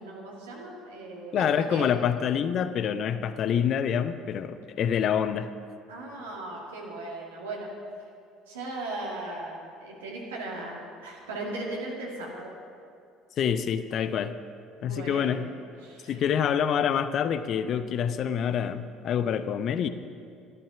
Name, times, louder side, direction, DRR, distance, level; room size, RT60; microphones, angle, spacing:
voice 1, 0.0-1.8 5.9-7.7 8.5-12.5 14.8-15.4 15.8-16.2, right 2 dB, 75° right, -3 dB, 2.2 m, -37 dB
voice 2, 1.3-5.5 13.4-14.3 14.8-15.5 16.1-19.9, left 8 dB, 50° left, 12 dB, 0.7 m, -26 dB
13.0 x 12.0 x 6.0 m, 2.3 s
figure-of-eight pair, 55°, 0 cm